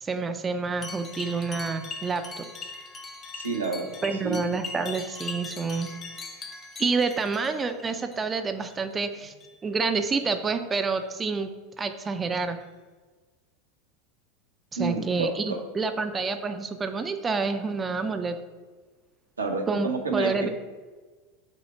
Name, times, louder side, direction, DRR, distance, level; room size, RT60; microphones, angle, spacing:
voice 1, 0.0-2.5 4.0-5.9 6.8-9.3 9.6-11.5 11.8-12.6 14.7-18.4 19.7-20.5, right 4 dB, 20° right, 8 dB, 0.4 m, -28 dB
sound 1, 0.8-8.2 8.5-8.9 9.3-9.6 10.1-10.3 11.0-11.1 11.8-11.9 12.6-12.7, left 3 dB, 25° left, 0.8 m, -40 dB
voice 2, 3.3-3.9 4.2-4.4 14.8-15.6 19.4-20.5, right 3 dB, 80° right, 3 dB, 0.7 m, -29 dB
5.7 x 2.1 x 4.4 m, 1.4 s
figure-of-eight pair, 80°, 0 cm